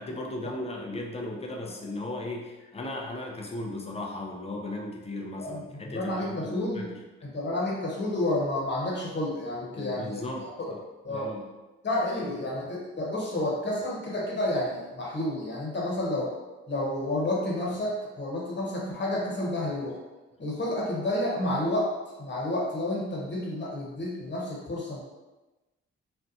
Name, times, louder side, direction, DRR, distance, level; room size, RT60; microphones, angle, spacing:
voice 1, 0.0-7.0 9.8-10.5 11.1-11.5, left 2 dB, 20° left, 0 dB, 0.6 m, -36 dB
voice 2, 5.4-6.9 7.2-10.3 10.6-10.7 11.0-11.3 11.8-16.3 16.7-20.0 20.4-21.9 22.2-25.0, left 1 dB, 40° left, -4 dB, 1.1 m, -30 dB
2.7 x 2.1 x 2.6 m, 1.1 s
hypercardioid pair, 45°, 29 cm